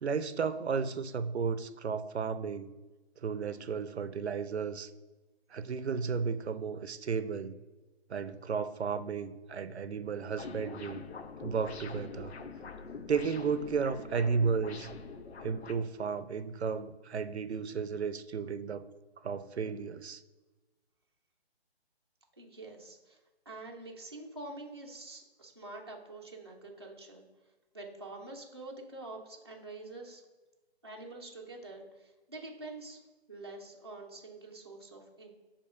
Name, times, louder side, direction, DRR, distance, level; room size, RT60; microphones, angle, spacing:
voice 1, 0.0-2.7 3.2-4.9 5.5-7.6 8.1-11.0 11.4-12.3 13.1-14.9 15.4-18.8 19.2-20.2, right 5 dB, 80° right, 12 dB, 0.6 m, -33 dB
sound 1, 10.4-15.7, left 4 dB, 75° left, 0.7 m, -44 dB
voice 2, 22.4-23.2 23.5-27.2 27.7-30.2 30.8-33.0 33.3-35.3, right 2 dB, 25° right, -2 dB, 0.5 m, -46 dB
7.0 x 2.9 x 4.8 m, 1.2 s
hypercardioid pair, 175°, 33 cm